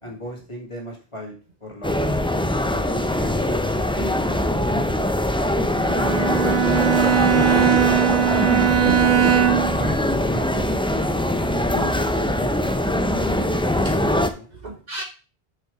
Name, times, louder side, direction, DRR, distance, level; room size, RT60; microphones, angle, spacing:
voice 1, 0.0-1.3 1.6-2.0 2.6-4.2 5.5-5.7 6.4-6.6 7.1-8.3 8.6-9.0 9.4-10.6 11.5-13.4 14.3-14.5, left 1 dB, 30° left, -1 dB, 2.6 m, -35 dB
sound 1, 1.8-14.3, left 1 dB, 5° left, 0.4 m, -22 dB
voice 2, 5.1-5.6 8.8-9.0 13.8-13.9 14.6-15.0, right 3 dB, 45° right, 5 dB, 0.9 m, -32 dB
Bowed string instrument, 5.8-9.9, right 10 dB, 75° right, 1.0 m, -20 dB
6.3 x 5.8 x 4.8 m, 0.34 s
omnidirectional pair, 1.0 m